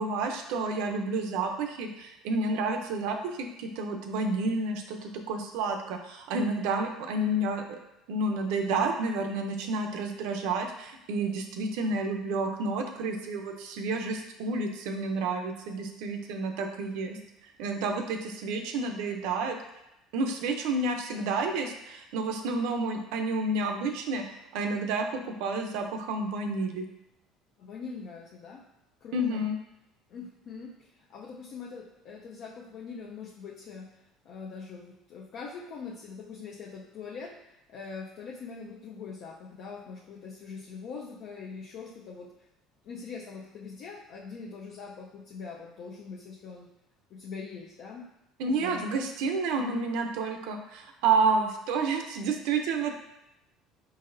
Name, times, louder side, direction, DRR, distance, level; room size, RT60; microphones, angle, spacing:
voice 1, 0.0-7.8 8.1-17.2 17.6-19.6 20.1-24.2 24.5-26.8 29.1-29.6 48.4-52.9, right 3 dB, 80° right, 5 dB, 0.5 m, -30 dB
voice 2, 27.6-28.6 29.0-29.5 30.1-33.9 34.2-42.3 42.8-46.7 47.1-48.0 48.4-48.8 49.6-49.8, left 5 dB, 60° left, -2 dB, 0.5 m, -42 dB
4.1 x 4.0 x 2.6 m, 0.88 s
supercardioid pair, 95°, 0 cm